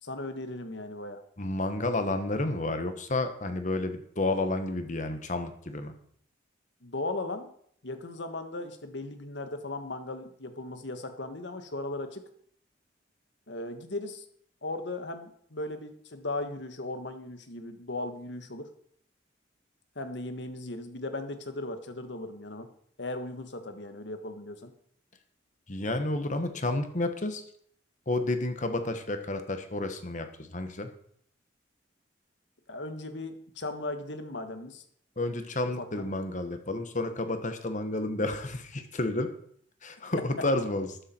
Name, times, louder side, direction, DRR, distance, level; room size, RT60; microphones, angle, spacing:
voice 1, 0.0-1.2 6.8-7.5 7.8-12.2 13.5-14.2 14.6-18.7 19.9-22.7 23.0-24.7 32.7-34.8 35.8-36.1, left 2 dB, 70° left, 8 dB, 1.5 m, -37 dB
voice 2, 1.4-5.9 25.7-27.4 28.1-30.9 35.2-39.3 39.8-41.0, left 2 dB, 40° left, 8 dB, 1.3 m, -31 dB
12.5 x 9.6 x 4.5 m, 0.63 s
head